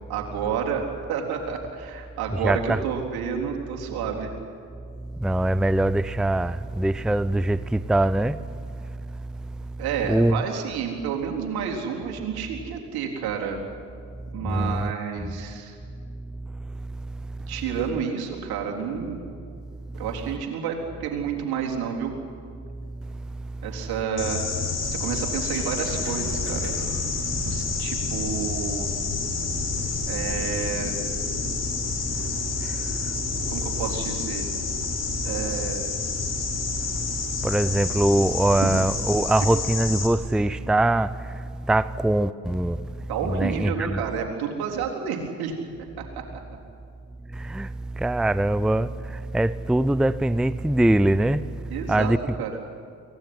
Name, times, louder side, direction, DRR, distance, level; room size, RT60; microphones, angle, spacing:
voice 1, 0.1-4.3 9.8-13.6 14.3-15.8 17.5-19.2 19.9-22.1 23.6-24.5 24.8-26.7 27.4-28.9 30.1-30.9 33.5-34.5 35.2-35.9 39.4-39.5 43.1-45.5 46.0-46.1 51.7-52.1 52.4-52.5, right 7 dB, 75° right, 4.0 m, -30 dB
voice 2, 2.4-2.8 5.2-8.4 8.8-9.0 9.3-9.4 9.7-9.8 10.1-10.4 14.4-14.9 15.2-15.3 16.5-17.1 29.9-30.0 31.9-33.6 36.9-42.8 43.2-44.0 47.3-52.2 52.5-52.6, right 1 dB, ahead, 0.6 m, -23 dB
sound 1, 24.2-40.1, left 4 dB, 40° left, 4.9 m, -29 dB
sound 2, 25.5-31.4, right 2 dB, 35° right, 6.2 m, -41 dB
23.5 x 18.5 x 9.8 m
hypercardioid pair, 60°, 38 cm